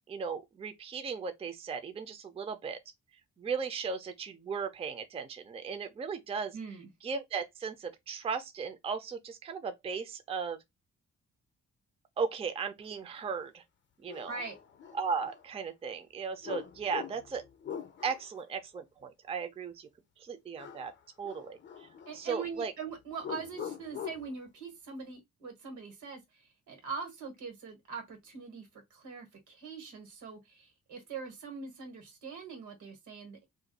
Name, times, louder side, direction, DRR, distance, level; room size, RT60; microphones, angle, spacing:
voice 1, 0.1-2.8 3.4-6.5 7.0-10.6 12.2-13.6 14.0-14.3 14.9-17.4 18.0-19.9 20.2-20.9 21.2-21.9 22.1-22.7, right 5 dB, 20° right, 0.4 m, -36 dB
voice 2, 6.5-6.9 14.3-14.6 22.1-33.5, right 5 dB, 90° right, 1.4 m, -42 dB
sound 1, 13.4-13.5 14.1-15.4 16.4-18.4 20.6-21.0 21.2-22.5 23.2-24.3, left 8 dB, 40° left, 0.5 m, -43 dB
2.5 x 2.2 x 3.9 m
cardioid pair, 135°, 29 cm